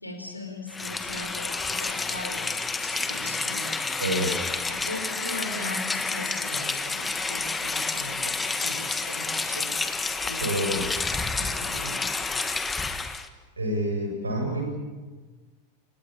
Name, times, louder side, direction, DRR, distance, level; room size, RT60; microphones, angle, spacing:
voice 1, 0.0-3.9 4.7-9.7 10.2-10.7 11.4-12.0 13.1-13.2, left 2 dB, 85° left, 4 dB, 4.8 m, -39 dB
Rain, 0.7-13.3, left 3 dB, 10° left, 1.5 m, -29 dB
voice 2, 4.0-4.5 10.4-10.8 13.6-14.6, equal, 75° right, 2 dB, 7.7 m, -27 dB
29.0 x 18.0 x 8.9 m, 1.3 s
figure-of-eight pair, 90°, 0 cm